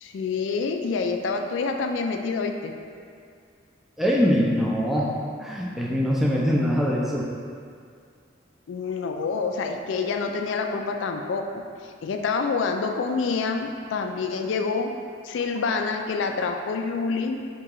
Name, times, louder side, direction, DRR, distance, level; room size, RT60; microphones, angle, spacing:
voice 1, 0.0-2.7 8.7-11.4 12.0-14.9 15.2-17.4, left 4 dB, 85° left, 4 dB, 0.3 m, -27 dB
voice 2, 4.0-5.1 5.4-7.3, equal, ahead, -4 dB, 0.4 m, -23 dB
4.1 x 2.9 x 3.7 m, 2.2 s
head